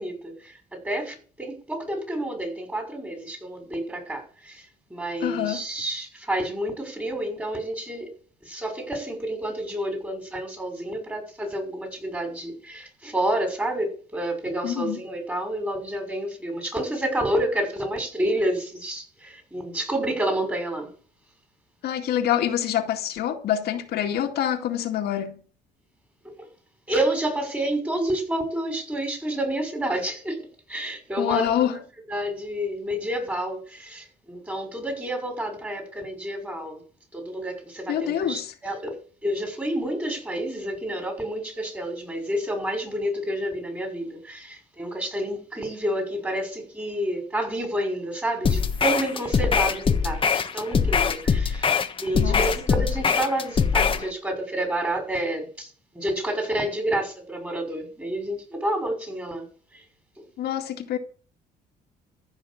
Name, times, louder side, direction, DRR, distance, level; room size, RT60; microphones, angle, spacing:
voice 1, 0.0-8.1 8.4-20.9 26.2-26.5 26.9-31.5 32.1-36.8 37.1-51.7 52.0-55.7 55.9-59.4 59.7-59.8 60.2-60.3, right 1 dB, 10° right, 5.9 m, -29 dB
voice 2, 5.2-5.6 14.6-15.0 21.8-25.4 31.2-31.8 37.9-38.5 52.1-52.4 52.8-52.9 60.4-61.0, left 10 dB, 70° left, 2.1 m, -26 dB
sound 1, 48.4-54.1, left 6 dB, 30° left, 1.4 m, -22 dB
14.5 x 6.1 x 8.6 m
cardioid pair, 110°, 17 cm